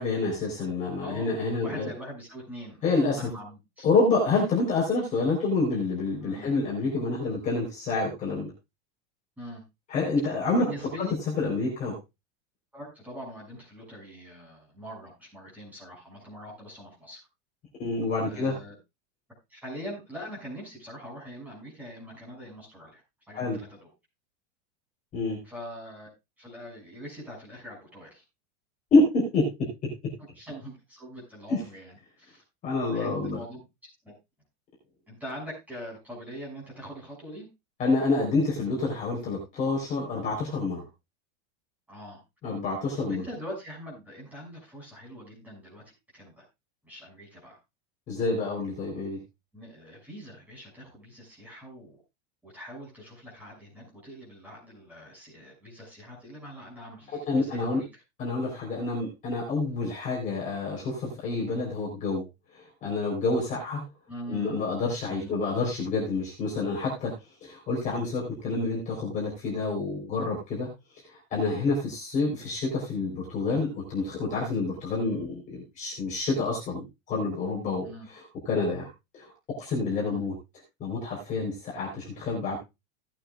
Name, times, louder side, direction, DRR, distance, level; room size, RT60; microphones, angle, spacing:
voice 1, 0.0-1.9 2.8-3.2 3.8-8.5 9.9-10.7 11.0-11.1 11.4-12.0 17.8-18.5 23.3-23.6 25.1-25.4 28.9-29.9 31.5-31.6 32.6-33.4 37.8-40.8 42.4-43.2 48.1-49.2 57.3-57.8 58.2-62.2 62.5-63.8 64.3-67.1 67.4-78.2 78.5-79.3 79.6-80.3 80.8-82.6, left 3 dB, 20° left, -4 dB, 4.1 m, -28 dB
voice 2, 1.0-3.9 6.2-6.5 9.4-9.6 10.6-11.1 12.7-17.2 18.3-18.7 19.5-23.0 23.3-23.9 25.4-26.1 26.4-28.2 30.3-32.4 32.8-33.6 34.0-34.1 35.1-37.5 41.9-42.2 43.0-46.4 46.8-47.6 49.5-52.0 52.4-58.0 64.1-64.7 65.0-65.3 77.8-78.1 80.0-80.3, equal, 5° right, -4 dB, 6.5 m, -43 dB
18.0 x 8.8 x 2.4 m, 0.24 s
supercardioid pair, 180°, 35 cm